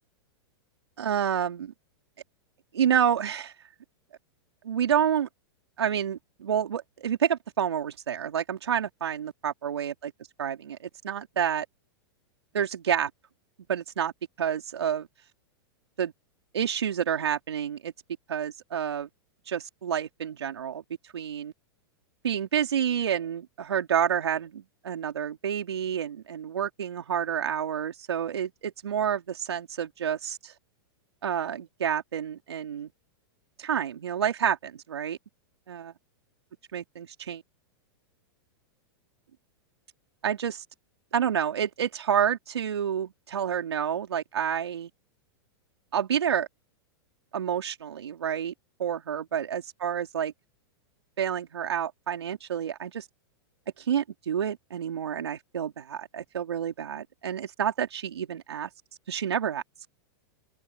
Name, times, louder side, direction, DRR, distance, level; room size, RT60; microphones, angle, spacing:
voice 1, 1.0-1.7 2.7-3.5 4.6-5.3 5.8-10.1 10.4-11.7 12.5-13.1 13.7-14.1 14.4-15.1 16.0-16.1 16.5-17.9 18.3-19.1 19.5-20.8 21.1-21.5 22.2-30.5 31.2-32.9 33.6-35.2 35.7-35.9 36.7-37.4 40.2-40.6 41.1-44.9 45.9-46.5 47.3-48.5 48.8-50.3 51.2-53.0 53.8-58.7 59.1-59.6, right 8 dB, 90° right, 4.2 m, -29 dB
open air
hypercardioid pair, 125°, 13 cm